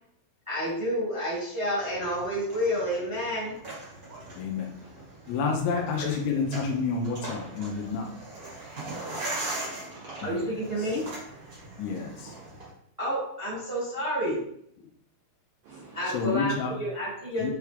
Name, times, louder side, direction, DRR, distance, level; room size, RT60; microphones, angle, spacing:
voice 1, 0.5-3.6 5.7-6.3 10.2-11.0 13.0-14.4 15.9-17.5, equal, 15° right, -8 dB, 1.0 m, -30 dB
sound 1, 1.8-12.7, right 2 dB, 70° right, 0.8 m, -40 dB
voice 2, 4.4-4.7 5.3-8.1 10.2-10.5 10.8-10.9 11.8-12.3 14.8-14.9 16.1-16.8 17.4-17.5, left 5 dB, 85° left, 1 dB, 3.3 m, -29 dB
voice 3, 9.2-10.5 15.6-16.2, right 3 dB, 90° right, -1 dB, 2.0 m, -49 dB
8.9 x 3.3 x 3.5 m, 0.69 s
omnidirectional pair, 5.6 m